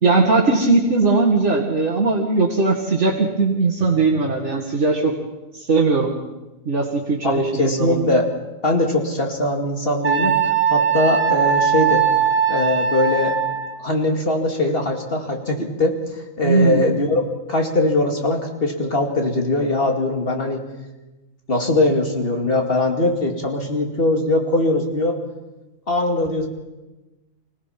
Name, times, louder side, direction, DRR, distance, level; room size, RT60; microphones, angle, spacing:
voice 1, 0.0-5.1 5.5-6.1 6.7-8.0 16.4-16.9, right 3 dB, 55° right, -3 dB, 2.3 m, -19 dB
voice 2, 7.2-8.3 8.6-10.4 10.7-12.0 12.5-13.4 13.8-17.2 17.5-20.6 21.5-25.2 25.9-26.5, left 2 dB, 45° left, 2 dB, 2.6 m, -21 dB
Wind instrument woodwind instrument, 10.0-13.8, right 7 dB, 25° right, 2.8 m, -20 dB
25.5 x 18.0 x 5.9 m, 1.1 s
omnidirectional pair, 1.4 m